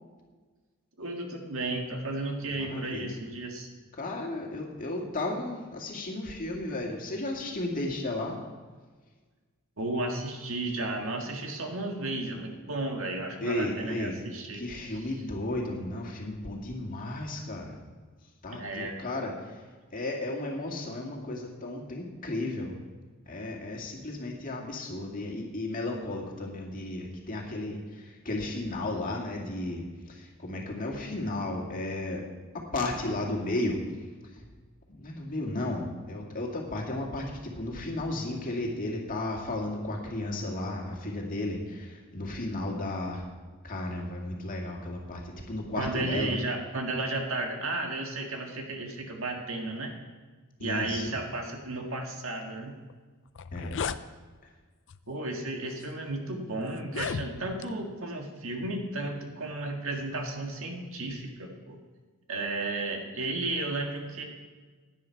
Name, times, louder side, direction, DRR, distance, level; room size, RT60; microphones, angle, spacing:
voice 1, 1.0-3.7 9.8-14.6 18.5-19.3 45.8-49.9 50.6-52.7 55.1-61.8 62.3-64.2, right 2 dB, 65° right, 2 dB, 1.8 m, -33 dB
voice 2, 2.5-3.1 4.0-8.4 13.4-14.1 14.5-17.8 18.4-19.6 19.9-22.8 23.3-32.2 32.5-33.8 34.3-34.5 34.9-43.3 43.6-46.4 50.6-51.0 53.5-53.9, left 2 dB, 40° left, 0 dB, 2.2 m, -34 dB
sound 1, 52.9-53.0 53.3-54.0 54.9-55.1 55.8-55.9 56.8-57.7, left 6 dB, 55° left, 0.4 m, -35 dB
16.5 x 10.0 x 4.7 m, 1.4 s
head